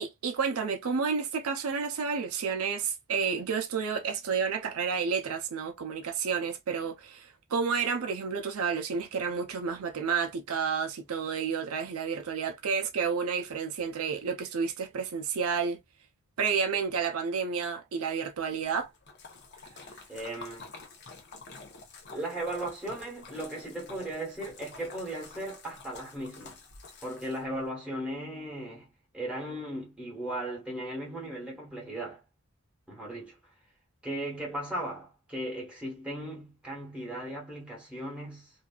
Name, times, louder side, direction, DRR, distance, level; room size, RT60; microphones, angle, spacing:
voice 1, 0.0-15.8 16.4-18.9, right 6 dB, 80° right, 0.5 m, -30 dB
Splash splatter, 18.5-27.7, left 4 dB, 50° left, 0.7 m, -49 dB
voice 2, 20.1-20.7 22.1-26.6 27.0-32.2 32.9-33.4 34.0-38.5, right 1 dB, 5° right, 1.1 m, -37 dB
2.6 x 2.4 x 2.2 m
head